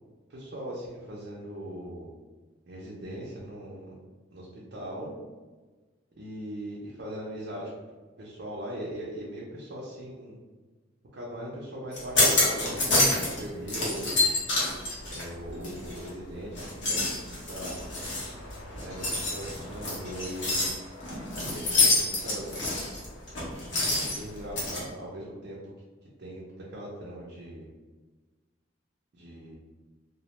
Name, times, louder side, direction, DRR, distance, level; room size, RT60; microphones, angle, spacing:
voice 1, 0.3-2.1 2.7-3.9 4.3-5.1 6.2-7.7 8.2-10.4 11.1-14.3 15.1-17.8 18.8-20.6 21.5-22.8 23.9-25.6 26.2-26.4 26.7-27.7 29.1-29.5, equal, 65° right, -6 dB, 0.5 m, -40 dB
sound 1, 11.9-13.4 13.7-16.1 16.5-24.8, left 2 dB, 75° left, 0.9 m, -27 dB
2.3 x 2.1 x 2.9 m, 1.3 s
head